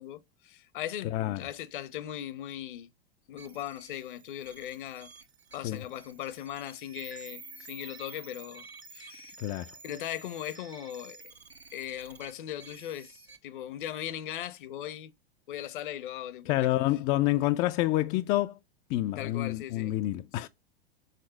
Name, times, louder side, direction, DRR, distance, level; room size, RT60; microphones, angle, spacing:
voice 1, 0.0-2.9 3.3-5.1 5.5-8.7 8.9-9.3 9.8-11.2 11.7-15.1 15.5-16.8 19.2-20.0 20.3-20.4, left 11 dB, 55° left, 0.9 m, -39 dB
voice 2, 1.0-1.4 5.6-5.8 9.4-9.7 16.5-18.6 18.9-20.5, left 15 dB, 25° left, 0.4 m, -28 dB
sound 1, 3.4-13.4, right 4 dB, 85° right, 1.1 m, -50 dB
6.5 x 3.9 x 6.3 m
figure-of-eight pair, 95°, 30 cm